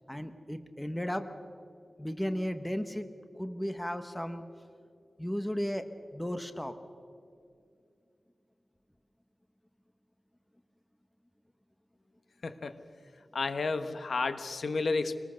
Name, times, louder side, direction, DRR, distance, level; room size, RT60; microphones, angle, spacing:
voice 1, 0.1-1.3 2.0-3.1 3.4-4.4 5.2-5.8 6.1-6.7, equal, 10° left, 9 dB, 1.2 m, -34 dB
voice 2, 12.4-12.7 13.3-15.1, left 3 dB, 80° left, 9 dB, 1.2 m, -31 dB
25.5 x 19.5 x 6.4 m, 2.4 s
wide cardioid pair, 100°, 0 cm